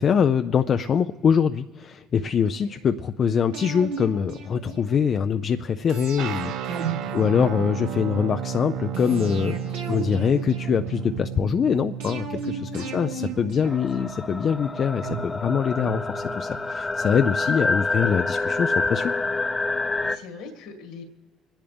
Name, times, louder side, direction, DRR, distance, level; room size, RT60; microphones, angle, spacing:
voice 1, 0.0-19.1, left 7 dB, 50° left, 9 dB, 0.4 m, -24 dB
voice 2, 2.4-2.8 6.9-7.4 12.7-13.1 20.0-21.0, left 4 dB, 80° left, 3 dB, 2.1 m, -43 dB
sound 1, 3.5-5.1 5.9-8.0 8.9-11.2 12.0-14.4 15.0-16.7 17.0-17.1, right 5 dB, 85° right, 1.7 m, -35 dB
sound 2, 6.2-15.1, right 8 dB, 70° right, 0.6 m, -33 dB
sound 3, 13.6-20.2, left 3 dB, 25° left, 0.7 m, -27 dB
26.5 x 10.5 x 3.5 m, 1.5 s
hypercardioid pair, 60°, 0 cm